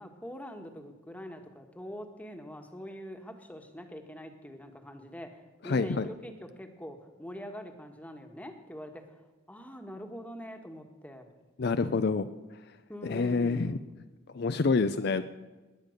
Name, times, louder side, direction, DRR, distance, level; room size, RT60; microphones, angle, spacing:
voice 1, 0.0-9.2 9.5-11.3 12.9-13.9, equal, 10° left, 5 dB, 1.4 m, -44 dB
voice 2, 5.6-6.1 11.6-12.3 13.0-13.8 14.3-15.2, left 4 dB, 55° left, 10 dB, 0.5 m, -27 dB
19.0 x 10.0 x 6.5 m, 1.2 s
head